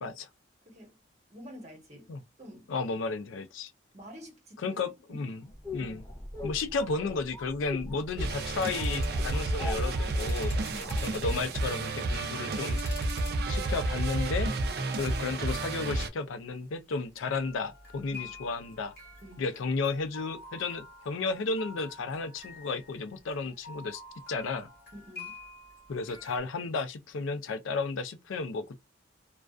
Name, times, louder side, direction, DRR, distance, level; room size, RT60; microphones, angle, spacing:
voice 1, 0.6-1.0 1.3-2.1 2.4-2.7 3.9-4.8 5.1-5.5 5.8-6.0 10.7-11.0 18.1-18.3 19.2-19.5 24.9-25.4, equal, 35° right, 1.1 m, -48 dB
voice 2, 2.7-3.7 4.6-5.4 5.7-6.0 6.4-10.6 11.0-12.8 13.5-14.5 15.0-19.0 19.4-24.0 24.3-24.7 25.9-28.8, left 4 dB, 85° left, 0.4 m, -33 dB
sound 1, 5.5-11.7, left 2 dB, 15° left, 0.5 m, -42 dB
sound 2, 8.2-16.1, right 2 dB, 50° right, 0.4 m, -31 dB
sound 3, 8.5-9.2 10.0-11.3 12.0-13.4 13.7-14.2 14.6-14.8 17.3-26.4, left 3 dB, 55° left, 1.1 m, -48 dB
2.3 x 2.3 x 2.4 m
head